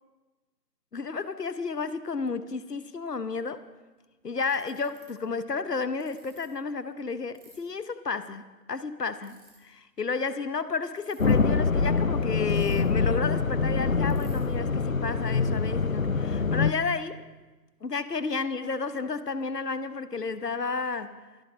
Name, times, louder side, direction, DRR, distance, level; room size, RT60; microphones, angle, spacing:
voice 1, 0.9-3.6 4.2-17.2 17.8-21.2, left 4 dB, 70° left, 13 dB, 1.1 m, -32 dB
Ratchet pawl, 3.7-3.8 4.4-5.0 6.0-6.4 7.3-7.5 9.2-9.5 10.9-11.3 12.5-13.0 13.3-13.4 13.6-13.7 14.1-14.4, right 4 dB, 15° right, 3.3 m, -56 dB
sound 1, 11.2-16.7, left 4 dB, 55° left, 0.7 m, -25 dB
24.0 x 12.0 x 3.3 m, 1.2 s
figure-of-eight pair, 175°, 49 cm